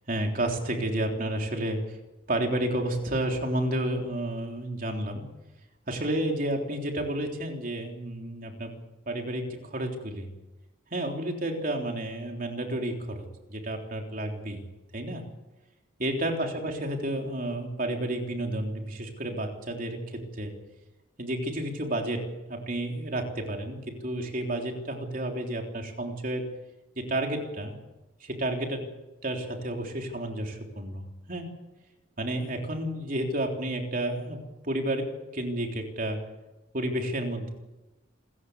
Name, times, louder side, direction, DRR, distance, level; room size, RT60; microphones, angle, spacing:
voice 1, 0.1-2.0 2.3-5.3 5.9-8.7 9.1-10.3 10.9-14.6 14.9-15.3 16.0-20.6 21.2-26.5 27.0-27.8 28.2-28.9 29.2-31.5 32.2-36.2 36.7-37.5, right 1 dB, 45° right, 2 dB, 3.6 m, -31 dB
27.0 x 15.0 x 8.2 m, 1.1 s
head